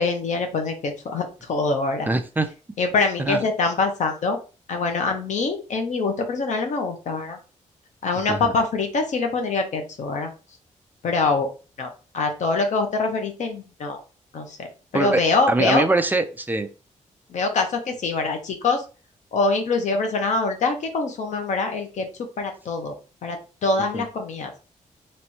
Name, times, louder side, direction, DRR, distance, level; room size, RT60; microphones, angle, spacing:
voice 1, 0.0-2.1 2.8-4.4 4.7-7.4 8.0-10.3 11.0-11.5 11.8-14.0 14.3-15.8 17.3-18.8 19.3-22.1 22.4-22.9 23.2-24.5, left 3 dB, 65° left, 5 dB, 1.0 m, -24 dB
voice 2, 2.1-2.5 3.2-3.4 8.3-8.5 14.9-15.2 15.5-16.7 23.9-24.0, right 2 dB, 15° right, 7 dB, 0.5 m, -22 dB
3.4 x 3.1 x 4.3 m, 0.34 s
wide cardioid pair, 145°, 13 cm